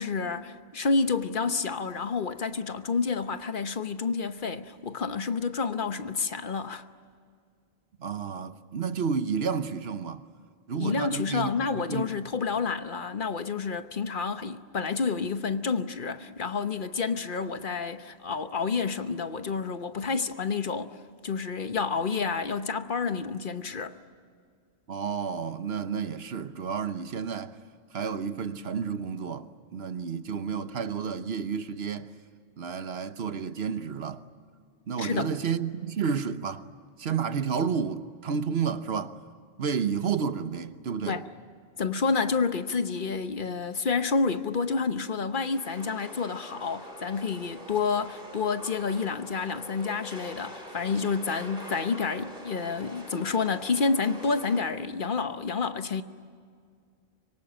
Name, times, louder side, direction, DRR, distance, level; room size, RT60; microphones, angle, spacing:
voice 1, 0.0-6.8 10.8-21.0 21.2-24.0 35.0-35.3 41.1-41.3 41.8-56.0, left 5 dB, 55° left, 1.1 m, -29 dB
voice 2, 8.0-10.2 10.7-12.1 24.9-27.6 27.9-32.1 32.6-34.2 34.9-36.7 37.0-39.2 39.6-41.2, right 6 dB, 85° right, 1.3 m, -31 dB
sound 1, 45.5-54.6, equal, 55° right, 7.2 m, -44 dB
25.5 x 23.5 x 8.9 m
omnidirectional pair, 1.0 m